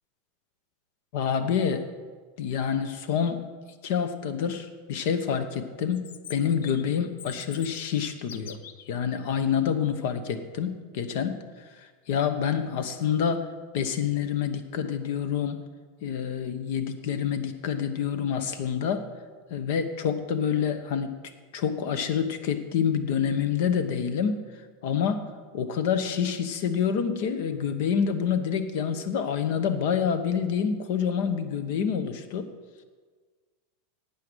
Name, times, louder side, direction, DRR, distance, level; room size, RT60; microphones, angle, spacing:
voice 1, 1.1-1.9 2.4-3.4 3.8-6.0 6.3-8.6 8.9-11.4 11.7-13.5 13.7-15.6 16.0-19.1 19.5-21.2 21.5-24.4 24.8-25.2 25.5-32.5, left 7 dB, 50° left, 10 dB, 1.0 m, -27 dB
Chirp tweet, 5.9-8.9, left 9 dB, 85° left, 0.7 m, -44 dB
11.5 x 8.6 x 6.3 m, 1.5 s
supercardioid pair, 170°, 0 cm